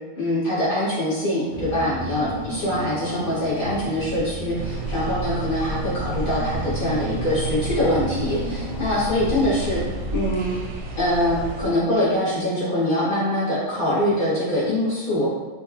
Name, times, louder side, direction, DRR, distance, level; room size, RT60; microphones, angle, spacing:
voice 1, 0.2-9.8 10.1-10.5 11.0-15.3, left 1 dB, 35° left, -10 dB, 1.8 m, -23 dB
Car / Engine, 1.5-10.7, equal, 60° left, 1.3 m, -33 dB
sound 1, 4.6-11.6, right 3 dB, 60° right, 0.9 m, -31 dB
4.8 x 3.0 x 2.9 m, 1.3 s
omnidirectional pair, 1.5 m